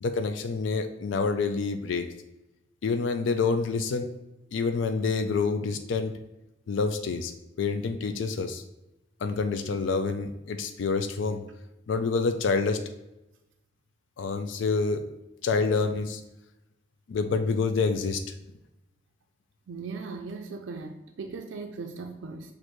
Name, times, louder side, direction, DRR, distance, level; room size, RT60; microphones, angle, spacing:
voice 1, 0.0-2.1 2.8-4.1 4.5-6.2 6.7-7.3 7.6-8.6 9.2-11.4 11.9-12.8 14.2-15.0 15.4-16.2 17.1-18.3, left 4 dB, 75° left, 7 dB, 0.4 m, -27 dB
voice 2, 19.7-22.5, right 4 dB, 75° right, 4 dB, 0.4 m, -38 dB
6.4 x 2.6 x 3.0 m, 0.94 s
head